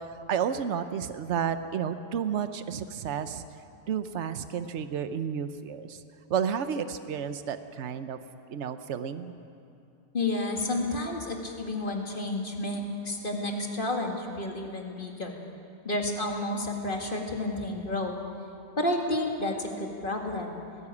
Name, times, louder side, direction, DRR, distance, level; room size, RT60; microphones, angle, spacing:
voice 1, 0.0-3.4 3.9-6.0 6.3-8.2 8.5-9.3, right 7 dB, 75° right, 10 dB, 1.1 m, -31 dB
voice 2, 10.1-15.4 15.8-18.2 18.8-20.6, left 2 dB, 45° left, 1 dB, 2.3 m, -31 dB
19.0 x 17.0 x 8.5 m, 2.6 s
omnidirectional pair, 1.2 m